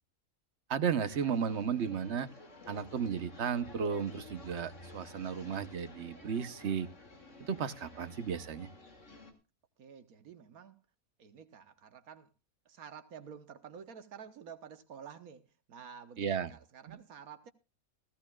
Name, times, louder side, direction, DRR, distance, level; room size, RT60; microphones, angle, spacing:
voice 1, 0.7-2.3 2.7-6.9 7.5-8.7 16.2-16.5 16.9-17.0, right 7 dB, 55° right, 1.2 m, -34 dB
sound 1, 1.0-9.3, left 2 dB, 55° left, 2.8 m, -52 dB
voice 2, 9.8-10.8 11.2-12.3 12.6-17.5, right 7 dB, 80° right, 1.5 m, -50 dB
16.5 x 16.0 x 2.4 m
omnidirectional pair, 1.5 m